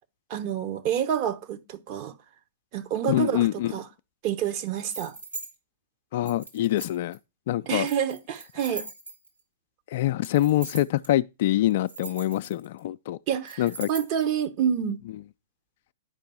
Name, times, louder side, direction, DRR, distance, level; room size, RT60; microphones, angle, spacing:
voice 1, 0.3-2.1 2.7-3.9 4.2-5.1 7.7-8.8 13.3-15.0, right 9 dB, 40° right, 0.9 m, -28 dB
voice 2, 3.1-3.7 6.1-7.2 7.5-7.9 9.9-13.2 13.6-13.9, left 14 dB, 50° left, 0.3 m, -25 dB
sound 1, 4.8-5.5 6.2-7.1 7.8-9.4 10.2-11.1 11.7-12.8 13.5-14.2, right 3 dB, 85° right, 2.1 m, -40 dB
10.5 x 5.2 x 4.3 m
figure-of-eight pair, 105°, 0 cm